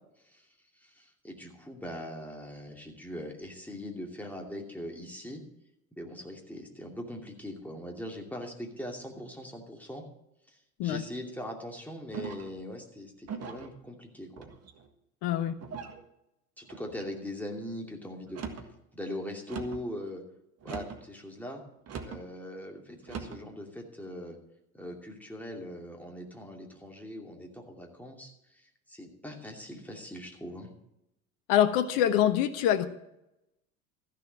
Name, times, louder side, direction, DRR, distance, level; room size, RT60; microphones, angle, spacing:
voice 1, 0.8-5.4 6.0-10.0 10.5-14.5 16.6-18.4 18.9-20.2 20.6-21.6 22.0-24.4 24.7-30.7, left 1 dB, 5° left, 0 dB, 2.6 m, -41 dB
Foley Object Metal Chest Open&Close Mono, 12.1-12.6 13.3-13.7 14.4-14.9 15.6-16.0 16.7-17.1 18.2-18.7 19.5-19.9 20.6-21.1 21.9-22.2 23.0-23.4, right 6 dB, 35° right, 1.7 m, -40 dB
voice 2, 15.2-15.5 31.5-32.9, left 11 dB, 50° left, 10 dB, 1.2 m, -25 dB
14.0 x 6.8 x 7.4 m, 0.84 s
figure-of-eight pair, 70°, 44 cm